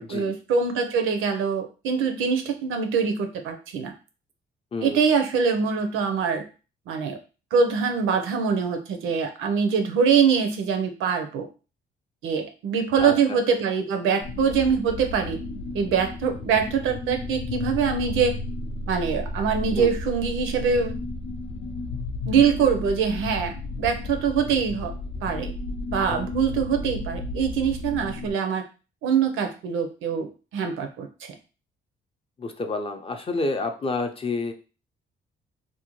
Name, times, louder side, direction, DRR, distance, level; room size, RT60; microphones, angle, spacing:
voice 1, 0.0-3.9 4.8-6.4 6.9-7.2 7.5-11.5 12.2-15.4 15.7-18.4 18.9-20.9 22.3-24.9 25.2-25.5 25.9-28.6 29.0-31.3, right 6 dB, 90° right, 6 dB, 0.5 m, -24 dB
voice 2, 13.0-13.4 19.8-19.9 32.4-34.5, left 3 dB, 30° left, 6 dB, 0.4 m, -29 dB
sound 1, 14.2-28.3, left 2 dB, 85° left, 0.6 m, -33 dB
2.6 x 2.1 x 2.9 m, 0.34 s
cardioid pair, 90°, 20 cm